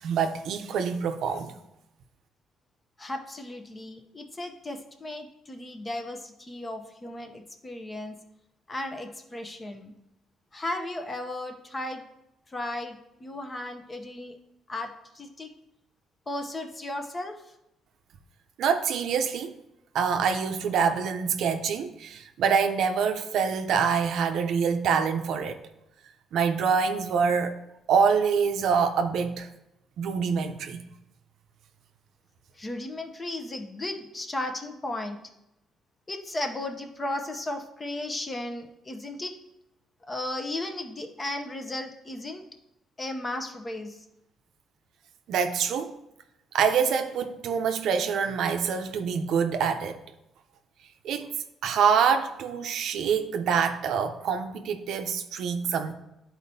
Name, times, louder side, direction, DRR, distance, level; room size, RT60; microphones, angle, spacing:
voice 1, 0.0-1.5 18.6-19.5 19.9-25.6 26.3-27.6 27.9-29.5 30.0-30.9 45.3-45.9 46.5-50.0 51.0-51.3 51.6-55.9, right 6 dB, 75° right, 0.6 m, -25 dB
voice 2, 3.0-8.2 8.7-9.9 10.5-12.0 12.5-14.4 14.7-15.5 16.3-17.4 32.6-35.2 36.1-39.3 40.1-42.4 43.0-44.0, left 1 dB, 20° left, 0.7 m, -35 dB
11.0 x 4.3 x 2.7 m
cardioid pair, 130°, 0 cm